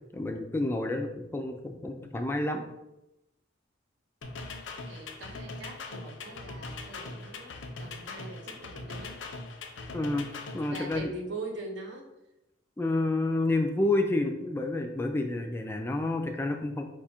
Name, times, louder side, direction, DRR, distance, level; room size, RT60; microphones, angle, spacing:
voice 1, 0.1-2.6 9.9-11.1 12.8-16.8, left 2 dB, 15° left, 4 dB, 0.3 m, -29 dB
sound 1, 4.2-11.0, left 3 dB, 85° left, 0.6 m, -41 dB
voice 2, 4.8-9.2 9.6-9.7 10.6-12.1, right 2 dB, 75° right, 2 dB, 1.0 m, -42 dB
4.7 x 2.4 x 4.3 m, 0.92 s
head